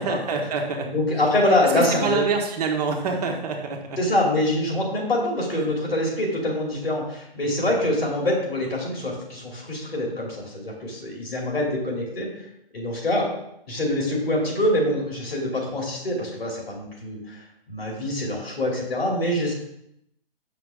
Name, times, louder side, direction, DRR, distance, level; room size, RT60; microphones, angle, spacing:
voice 1, 0.0-0.9 1.7-4.0 5.5-5.7 7.6-7.8, right 4 dB, 40° right, 2 dB, 1.2 m, -26 dB
voice 2, 0.9-2.2 4.0-12.5 12.7-13.3 13.7-17.4 17.7-19.5, left 1 dB, 75° left, -1 dB, 2.8 m, -25 dB
7.1 x 5.9 x 3.5 m, 0.78 s
figure-of-eight pair, 135°, 30 cm